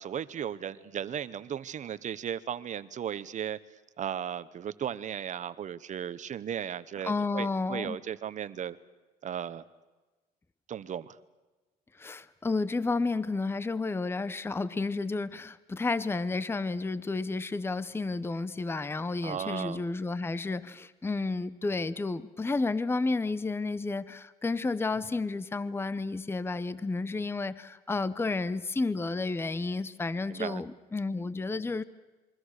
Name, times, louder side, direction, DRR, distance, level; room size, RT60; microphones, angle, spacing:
voice 1, 0.0-3.6 4.0-8.8 9.2-9.6 10.7-11.2 19.2-19.9 30.3-30.6, right 9 dB, 45° right, 15 dB, 1.0 m, -36 dB
voice 2, 7.0-8.0 12.0-31.8, left 3 dB, 15° left, 16 dB, 0.8 m, -31 dB
27.5 x 23.5 x 6.6 m, 1.2 s
cardioid pair, 110°, 17 cm